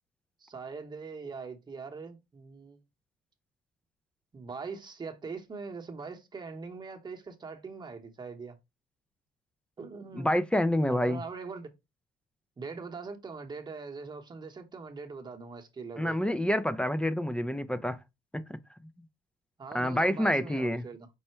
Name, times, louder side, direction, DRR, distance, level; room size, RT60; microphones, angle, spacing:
voice 1, 0.4-2.8 4.3-8.6 9.8-10.3 10.9-11.7 12.6-16.2 19.6-21.1, right 4 dB, 25° right, 1.0 m, -42 dB
voice 2, 10.1-11.2 16.0-18.0 18.5-18.6 19.7-20.8, equal, 5° left, 0.4 m, -27 dB
5.5 x 2.1 x 4.3 m
cardioid pair, 110°, 17 cm